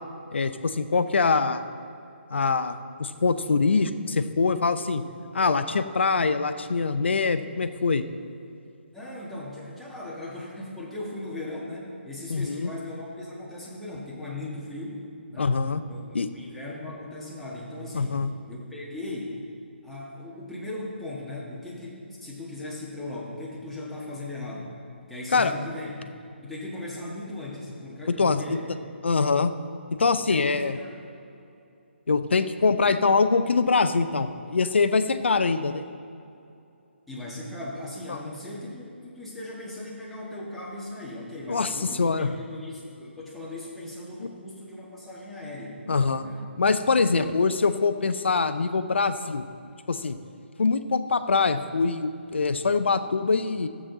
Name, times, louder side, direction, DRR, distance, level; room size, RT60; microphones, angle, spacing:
voice 1, 0.3-1.6 2.3-5.0 5.3-8.0 12.3-12.7 15.4-15.8 16.1-16.3 17.9-18.3 25.3-25.5 28.2-28.4 29.0-29.5 30.0-30.7 32.1-35.8 38.1-38.2 41.5-42.3 44.2-44.3 45.9-46.3 46.6-49.4 49.9-50.2 50.6-53.7, left 4 dB, 65° left, 10 dB, 0.6 m, -24 dB
voice 2, 8.9-19.4 19.8-24.7 25.1-26.1 26.4-28.7 30.2-30.9 37.1-45.8 46.2-46.5 47.1-47.3, left 2 dB, ahead, -7 dB, 1.7 m, -38 dB
13.5 x 7.5 x 3.9 m, 2.7 s
figure-of-eight pair, 140°, 6 cm